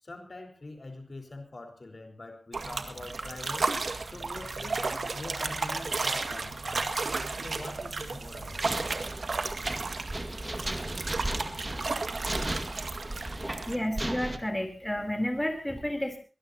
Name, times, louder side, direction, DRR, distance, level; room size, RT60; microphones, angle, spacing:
voice 1, 0.0-3.7 4.1-4.9 5.1-6.9 7.4-8.8, left 2 dB, 55° left, 4 dB, 4.5 m, -44 dB
sound 1, 2.5-13.8, right 3 dB, 75° right, 2.0 m, -33 dB
sound 2, 8.2-14.4, right 1 dB, 25° right, 2.0 m, -36 dB
voice 2, 13.7-16.2, left 1 dB, 15° left, 4 dB, 3.6 m, -31 dB
23.0 x 19.5 x 2.9 m, 0.33 s
wide cardioid pair, 75°, 0 cm